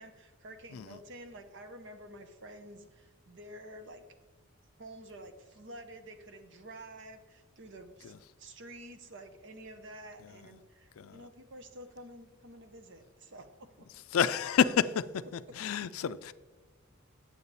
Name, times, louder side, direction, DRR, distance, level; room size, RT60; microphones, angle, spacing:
voice 1, 0.0-4.0 4.8-13.9, right 1 dB, 60° right, 0.9 m, -49 dB
voice 2, 11.0-11.3 14.1-15.0 15.3-16.3, left 7 dB, 75° left, 0.4 m, -29 dB
8.7 x 7.4 x 4.1 m
head